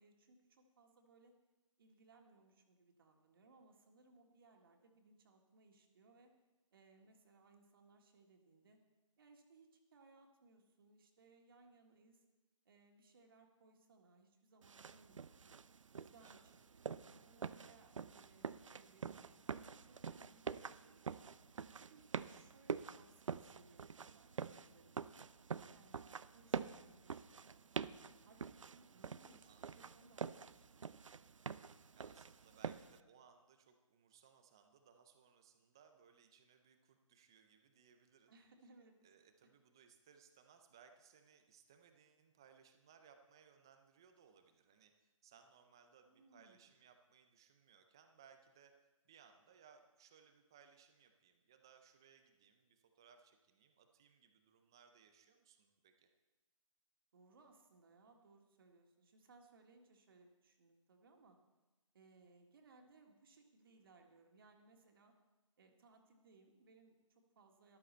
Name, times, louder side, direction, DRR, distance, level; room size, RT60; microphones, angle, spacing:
voice 1, 0.0-1.3 1.8-6.3 6.7-8.8 9.2-12.2 12.7-15.5 15.9-21.3 21.8-25.0 25.5-31.0 38.3-39.0 46.1-46.7 57.1-61.4 61.9-65.1 65.6-67.8, right 3 dB, 40° right, 3 dB, 1.9 m, -67 dB
sound 1, 14.6-33.0, right 6 dB, 65° right, 0.6 m, -47 dB
voice 2, 16.2-16.6 29.4-29.8 32.0-38.3 39.0-48.7 49.0-56.1, right 7 dB, 10° right, 6 dB, 0.3 m, -66 dB
13.5 x 13.0 x 4.3 m, 1.1 s
figure-of-eight pair, 155°, 18 cm